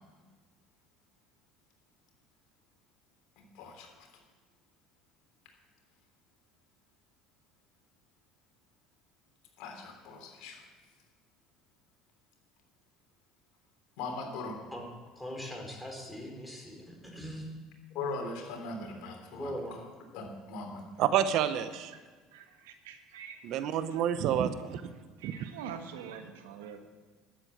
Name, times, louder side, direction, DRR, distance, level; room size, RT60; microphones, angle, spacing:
voice 1, 3.4-4.1 5.4-5.5 9.6-10.7 14.0-14.6 17.9-19.8 20.1-20.8, left 3 dB, 70° left, 3 dB, 3.4 m, -40 dB
voice 2, 15.1-17.5 19.3-19.7, equal, 5° left, 1 dB, 4.1 m, -41 dB
voice 3, 21.0-21.9 23.4-24.9 25.2-25.5, right 9 dB, 65° right, 12 dB, 0.8 m, -29 dB
voice 4, 22.3-23.4 23.9-24.0 25.2-26.8, right 7 dB, 85° right, 7 dB, 1.3 m, -45 dB
12.5 x 8.0 x 8.0 m, 1.4 s
supercardioid pair, 85°, 0 cm